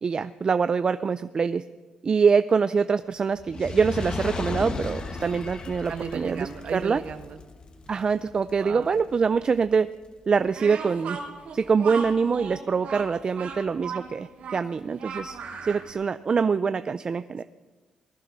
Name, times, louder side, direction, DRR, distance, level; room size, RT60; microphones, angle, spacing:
voice 1, 0.0-1.6 2.0-7.0 7.9-9.9 10.3-11.2 11.5-17.4, right 5 dB, 35° right, 12 dB, 0.4 m, -24 dB
Fire, 3.4-9.8 10.5-10.6, left 3 dB, 35° left, 1.4 m, -36 dB
voice 2, 5.9-7.4 8.6-8.9, right 6 dB, 55° right, 9 dB, 1.3 m, -35 dB
Speech, 10.5-15.9, right 5 dB, 70° right, 3.6 m, -36 dB
19.5 x 11.5 x 6.1 m, 1.3 s
cardioid pair, 120°, 2 cm